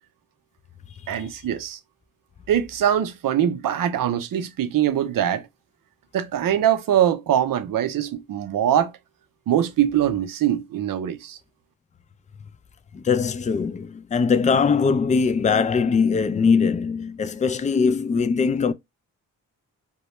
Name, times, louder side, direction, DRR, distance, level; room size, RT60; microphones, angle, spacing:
voice 1, 1.1-1.8 2.5-5.4 6.1-8.9 9.5-11.4, right 10 dB, 70° right, 0.5 m, -22 dB
voice 2, 12.9-18.7, left 5 dB, 20° left, 0.3 m, -21 dB
2.2 x 2.0 x 2.9 m
cardioid pair, 45°, 35 cm